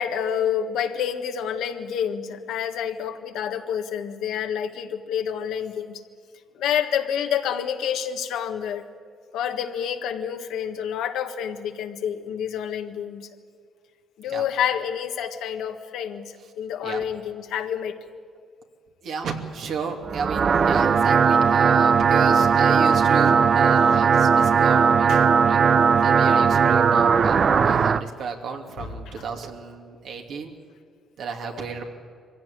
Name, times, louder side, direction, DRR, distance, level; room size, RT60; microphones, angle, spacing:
voice 1, 0.0-6.0 6.6-8.8 9.3-13.3 14.2-17.9 25.1-25.3 28.8-28.9 31.5-31.8, left 8 dB, 85° left, 5 dB, 1.6 m, -28 dB
voice 2, 19.0-25.7 26.0-30.5 31.2-31.8, right 5 dB, 70° right, 2 dB, 2.8 m, -33 dB
sound 1, 20.0-28.0, right 6 dB, 50° right, 0.7 m, -18 dB
23.5 x 16.0 x 9.6 m, 2.1 s
cardioid pair, 90°, 0 cm